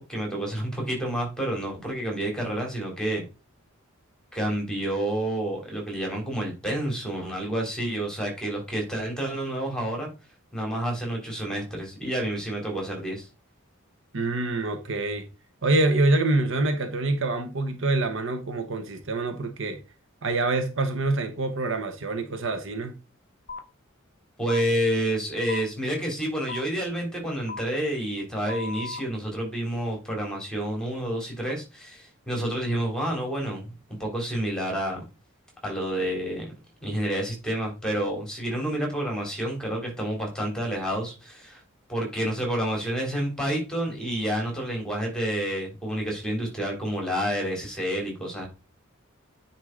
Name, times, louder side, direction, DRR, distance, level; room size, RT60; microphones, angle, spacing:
voice 1, 0.0-3.2 4.3-10.1 10.5-13.3 24.4-33.7 34.0-35.0 35.6-36.4 36.8-41.6 41.9-48.5, right 1 dB, 5° left, 3.2 m, -29 dB
voice 2, 14.1-15.2 15.6-19.8 20.2-22.9, right 2 dB, 65° right, 1.2 m, -26 dB
sound 1, 23.5-23.6 24.5-24.6 25.5-25.6 26.5-26.6 27.5-27.6 28.5-29.0, left 4 dB, 50° left, 0.8 m, -36 dB
9.5 x 4.6 x 3.8 m
head